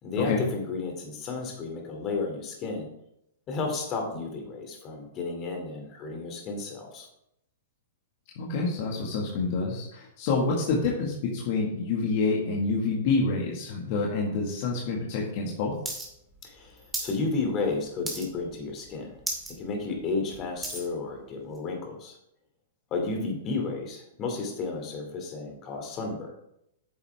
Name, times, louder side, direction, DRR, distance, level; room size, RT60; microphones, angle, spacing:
voice 1, 0.0-2.9 3.5-7.1 10.3-10.4 16.4-19.1 19.6-22.2 22.9-26.3, left 3 dB, 30° left, 2 dB, 2.7 m, -32 dB
voice 2, 8.4-15.7, left 4 dB, 50° left, -2 dB, 1.9 m, -27 dB
sound 1, 15.9-16.1 16.3-17.2 17.5-17.7 18.1-18.5 18.9-19.0 19.2-19.5 20.0-20.9 21.6-21.7, right 2 dB, 10° right, 2.4 m, -34 dB
9.3 x 7.2 x 3.6 m, 0.78 s
hypercardioid pair, 120°, 0 cm